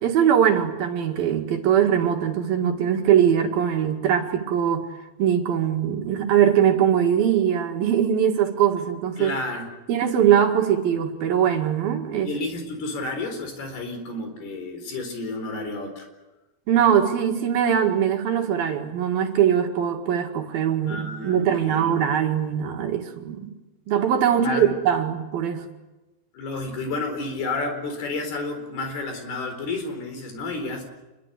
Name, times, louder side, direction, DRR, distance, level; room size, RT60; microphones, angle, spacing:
voice 1, 0.0-4.9 5.2-9.4 9.9-12.3 16.7-23.5 23.9-25.6, right 9 dB, 65° right, 4 dB, 3.7 m, -21 dB
voice 2, 9.2-9.7 12.2-16.1 20.9-22.1 24.4-24.8 26.3-30.8, left 3 dB, 75° left, 6 dB, 6.2 m, -31 dB
27.0 x 22.0 x 8.3 m, 1.1 s
omnidirectional pair, 4.6 m